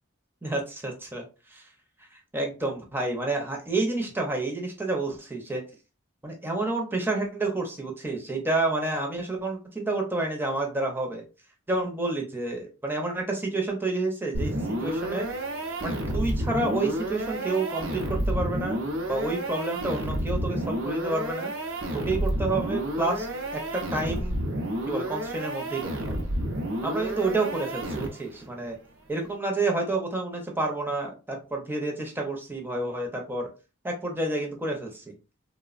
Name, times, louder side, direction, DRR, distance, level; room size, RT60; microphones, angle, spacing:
voice 1, 0.4-1.7 2.1-5.6 6.2-11.2 11.7-15.3 15.8-18.8 19.1-21.5 21.9-24.4 24.9-26.2 26.8-28.8 29.1-33.5 33.8-35.1, right 2 dB, 10° right, 1 dB, 0.5 m, -29 dB
sound 1, 14.3-28.4, right 1 dB, 65° right, 0.6 m, -30 dB
3.1 x 2.0 x 2.4 m, 0.33 s
head